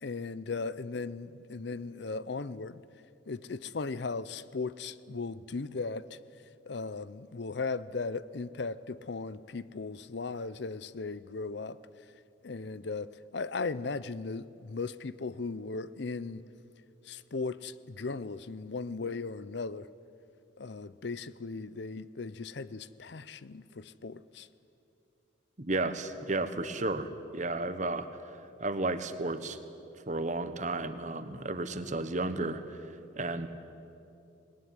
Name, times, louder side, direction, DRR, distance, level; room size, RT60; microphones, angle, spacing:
voice 1, 0.0-2.8 3.3-6.2 6.7-11.8 12.4-16.4 17.1-19.9 20.6-24.5, left 4 dB, 60° left, 0.6 m, -37 dB
voice 2, 25.6-28.1 28.6-29.6 30.1-32.8 33.1-33.5, right 2 dB, 40° right, 1.2 m, -33 dB
20.5 x 18.5 x 9.5 m
head